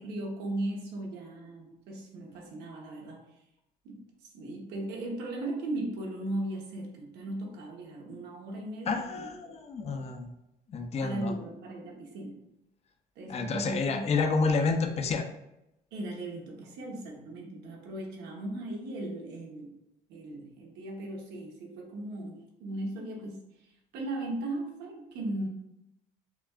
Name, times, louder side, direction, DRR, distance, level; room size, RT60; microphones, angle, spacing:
voice 1, 0.0-3.2 3.8-9.5 11.0-12.4 13.2-14.1 15.9-19.7 20.1-23.4 23.9-25.5, right 1 dB, 90° right, 0 dB, 1.1 m, -37 dB
voice 2, 8.9-10.3 10.7-11.3 13.3-15.3, left 4 dB, 40° left, 4 dB, 0.6 m, -29 dB
5.7 x 2.4 x 2.4 m, 0.86 s
cardioid pair, 110°, 17 cm